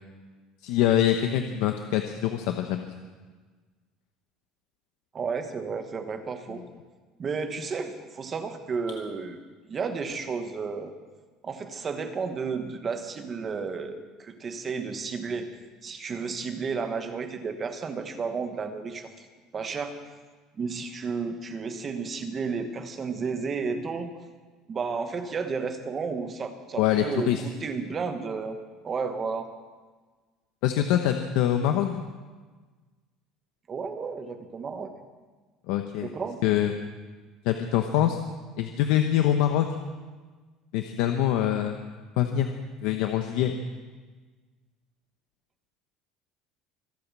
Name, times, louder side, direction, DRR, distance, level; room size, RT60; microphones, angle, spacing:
voice 1, 0.6-2.9 26.8-27.4 30.6-32.0 35.7-36.1 36.4-36.7 37.4-38.2 38.6-39.8 40.7-41.8 42.2-42.5 42.8-43.5, left 11 dB, 70° left, 6 dB, 1.0 m, -24 dB
voice 2, 5.1-6.6 7.2-9.4 9.7-10.9 11.4-15.5 15.8-19.1 19.5-19.9 20.5-24.1 24.7-28.6 28.8-29.5 33.7-34.9 36.0-36.4, right 5 dB, 20° right, 7 dB, 1.2 m, -32 dB
25.0 x 8.6 x 6.2 m, 1.4 s
cardioid pair, 175°, 0 cm